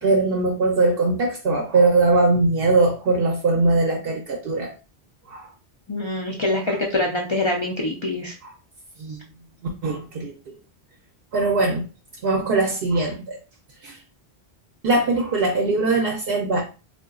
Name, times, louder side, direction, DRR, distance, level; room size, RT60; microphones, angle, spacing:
voice 1, 0.0-4.7 5.3-5.5 8.4-8.5 9.0-9.2 9.8-10.5 11.3-11.9 12.2-13.4 13.8-14.0 14.8-16.6, right 3 dB, 65° right, 1 dB, 0.7 m, -21 dB
voice 2, 5.9-8.3, left 2 dB, 45° left, -1 dB, 0.3 m, -24 dB
3.7 x 2.4 x 2.3 m, 0.32 s
omnidirectional pair, 1.1 m